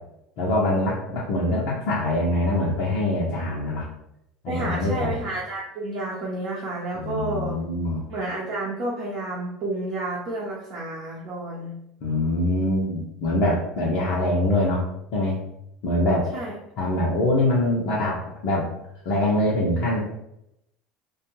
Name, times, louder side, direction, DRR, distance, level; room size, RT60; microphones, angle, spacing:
voice 1, 0.4-3.9 4.4-5.2 6.9-8.0 12.0-14.8 15.1-15.4 15.8-16.3 16.8-18.7 19.1-20.0, left 1 dB, 60° left, -5 dB, 0.6 m, -24 dB
voice 2, 4.5-7.6 8.1-11.7 16.3-16.5, right 2 dB, 55° right, -5 dB, 0.7 m, -30 dB
2.4 x 2.2 x 3.0 m, 0.81 s
hypercardioid pair, 75°, 0 cm